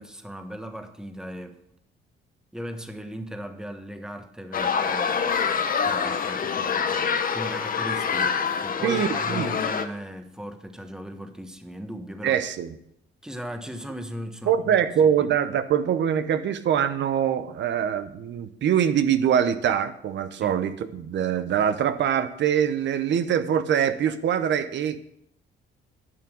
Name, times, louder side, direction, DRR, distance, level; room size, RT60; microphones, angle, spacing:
voice 1, 0.0-1.6 2.5-12.4 13.2-15.3 20.4-20.6, equal, 5° right, 6 dB, 1.3 m, -38 dB
sound 1, 4.5-9.9, left 6 dB, 45° left, 0.9 m, -26 dB
voice 2, 8.8-9.5 12.2-12.7 14.5-25.0, right 9 dB, 65° right, 12 dB, 0.9 m, -23 dB
11.0 x 5.9 x 6.4 m, 0.74 s
cardioid pair, 90°, 20 cm